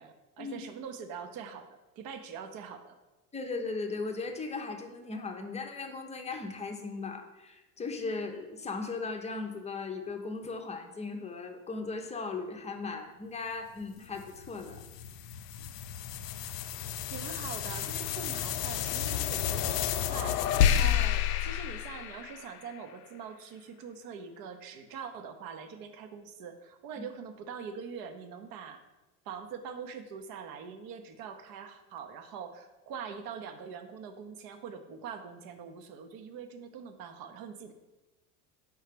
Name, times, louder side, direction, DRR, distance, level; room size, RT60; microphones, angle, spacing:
voice 1, 0.0-3.0 17.1-28.8 29.3-37.7, right 6 dB, 50° right, 8 dB, 0.8 m, -43 dB
voice 2, 3.3-14.8 20.8-20.9 27.0-27.1, left 4 dB, 15° left, 4 dB, 0.7 m, -37 dB
sound 1, 14.2-22.8, left 10 dB, 80° left, 0.5 m, -31 dB
5.5 x 3.4 x 5.1 m, 1.1 s
hypercardioid pair, 80°, 47 cm